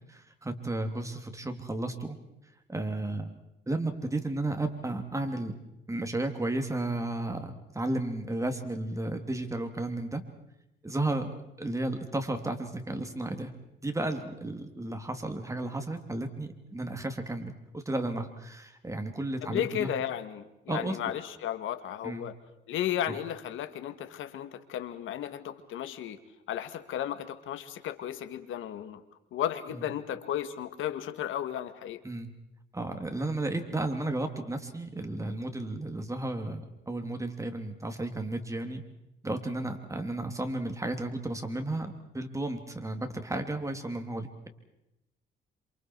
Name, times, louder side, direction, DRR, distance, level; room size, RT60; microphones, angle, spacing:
voice 1, 0.1-2.2 2.7-3.3 3.7-5.5 5.9-10.2 10.8-13.5 13.8-19.9 20.7-21.0 22.0-22.2 23.1-23.2 29.7-29.8 32.0-32.3 32.7-38.8 39.2-44.5, right 2 dB, 15° right, 6 dB, 3.2 m, -33 dB
voice 2, 19.4-22.4 22.7-26.2 26.5-29.0 29.3-32.0, left 10 dB, 80° left, 10 dB, 2.0 m, -34 dB
28.0 x 27.0 x 4.8 m, 0.87 s
cardioid pair, 90°, 20 cm